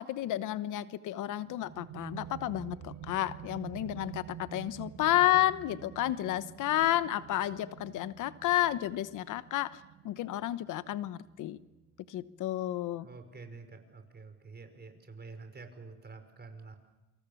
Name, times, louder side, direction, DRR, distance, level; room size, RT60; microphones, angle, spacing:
voice 1, 0.0-11.6 12.1-13.1, left 14 dB, 85° left, 14 dB, 1.0 m, -31 dB
sound 1, 1.4-12.8, right 9 dB, 85° right, 3.8 m, -48 dB
voice 2, 13.0-16.8, right 4 dB, 35° right, 7 dB, 5.5 m, -48 dB
28.0 x 26.5 x 7.1 m, 1.1 s
cardioid pair, 90°, 30 cm